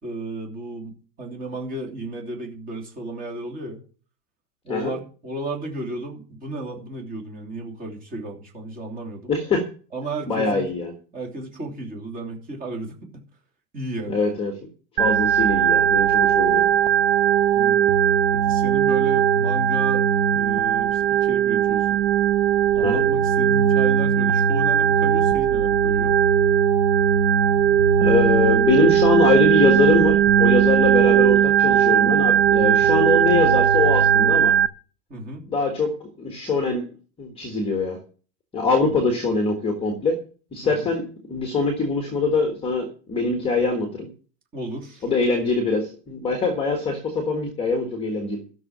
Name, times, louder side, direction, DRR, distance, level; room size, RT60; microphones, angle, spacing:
voice 1, 0.0-3.8 4.6-9.3 9.9-10.7 11.1-13.2 13.7-14.2 17.5-18.0 18.3-20.0 20.3-22.0 22.7-26.1 35.1-35.4 38.8-38.9 40.6-40.9 44.5-45.0, right 1 dB, 15° right, 1 dB, 3.1 m, -34 dB
voice 2, 9.3-9.6 10.3-10.9 14.1-14.5 14.9-16.6 22.8-23.1 28.0-34.5 35.4-36.9 37.2-38.0 38.5-40.2 40.5-41.0 41.3-44.1 45.0-48.4, left 4 dB, 10° left, 5 dB, 1.5 m, -23 dB
Organ, 15.0-34.7, right 9 dB, 40° right, 0.7 m, -18 dB
13.5 x 6.7 x 7.2 m, 0.39 s
supercardioid pair, 180°, 49 cm